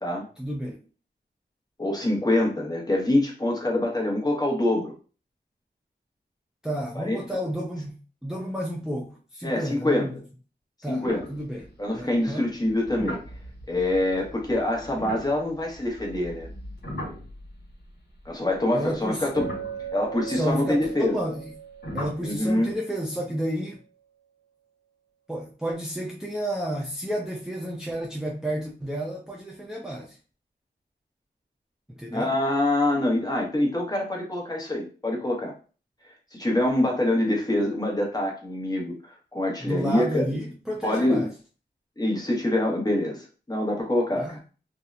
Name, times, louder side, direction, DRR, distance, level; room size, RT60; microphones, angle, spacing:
voice 1, 0.4-0.8 6.6-10.1 10.8-12.5 18.7-19.4 20.3-21.5 21.9-23.8 25.3-30.2 31.9-32.3 39.6-41.3 44.2-44.4, equal, 5° right, -1 dB, 0.4 m, -31 dB
voice 2, 1.8-4.9 6.9-7.2 9.4-10.1 10.9-11.3 11.8-13.2 13.7-16.5 18.2-19.5 19.9-21.2 22.2-22.7 32.1-35.5 36.3-40.3 40.8-41.3 42.0-44.4, left 1 dB, 20° left, -1 dB, 0.9 m, -25 dB
sound 1, 11.0-12.0 12.6-17.9 18.2-18.3 18.9-19.0 19.4-20.4 21.8-22.3, equal, 70° left, 1.3 m, -38 dB
Chink clink, 19.3-23.4, right 9 dB, 80° right, 0.7 m, -39 dB
2.7 x 2.1 x 2.3 m, 0.37 s
cardioid pair, 50°, 18 cm